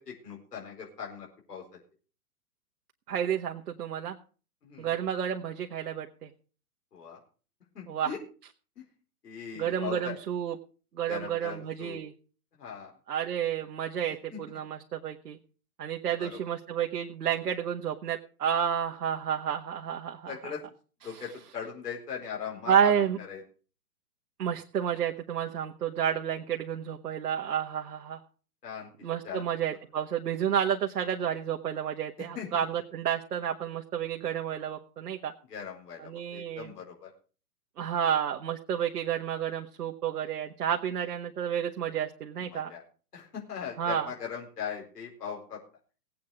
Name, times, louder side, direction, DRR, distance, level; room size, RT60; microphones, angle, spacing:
voice 1, 0.0-1.6 4.6-5.0 6.9-7.2 7.7-8.2 9.2-10.1 11.1-12.0 12.6-12.9 14.3-14.4 16.2-16.4 20.3-20.6 21.0-23.4 28.6-28.9 29.2-29.5 32.3-32.5 35.5-37.1 42.4-42.8 43.1-45.6, left 7 dB, 75° left, -1 dB, 4.7 m, -39 dB
voice 2, 3.1-4.2 4.8-6.3 7.9-8.1 9.6-10.6 10.9-12.1 13.1-15.4 15.8-20.4 21.0-21.2 22.7-23.2 24.4-28.2 29.0-35.3 36.0-36.7 37.8-42.7 43.8-44.1, right 9 dB, 70° right, 3 dB, 1.4 m, -30 dB
17.5 x 8.6 x 4.9 m, 0.39 s
hypercardioid pair, 135°, 47 cm